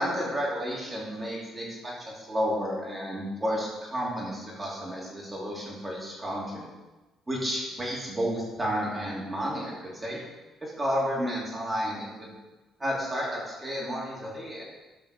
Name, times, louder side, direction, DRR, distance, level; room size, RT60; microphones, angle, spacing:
voice 1, 0.0-6.7 7.3-10.2 10.6-12.3 12.8-14.6, equal, 10° right, -5 dB, 3.1 m, -31 dB
12.5 x 5.5 x 6.6 m, 1.2 s
cardioid pair, 160°, 0 cm